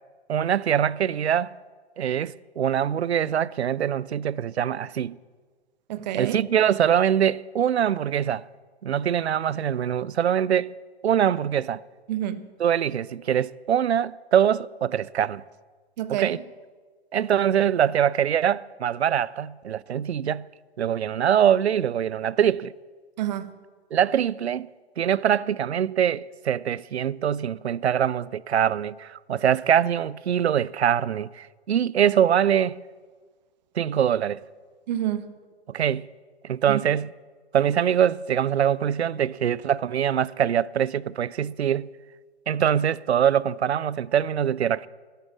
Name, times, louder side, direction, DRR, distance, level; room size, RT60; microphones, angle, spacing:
voice 1, 0.3-1.5 2.0-5.2 6.1-8.4 8.8-10.7 11.0-11.8 12.6-15.4 16.1-16.4 17.1-20.5 20.8-22.7 23.9-24.7 25.0-32.8 33.8-34.4 35.7-36.1 36.4-37.1 37.5-41.9 42.5-44.9, right 9 dB, 75° right, 0.5 m, -23 dB
voice 2, 5.9-6.4 12.1-12.5 16.0-16.4 23.2-23.6 34.9-35.3 36.7-36.8, right 12 dB, 40° right, 1.0 m, -28 dB
12.0 x 11.0 x 7.3 m
figure-of-eight pair, 120°, 33 cm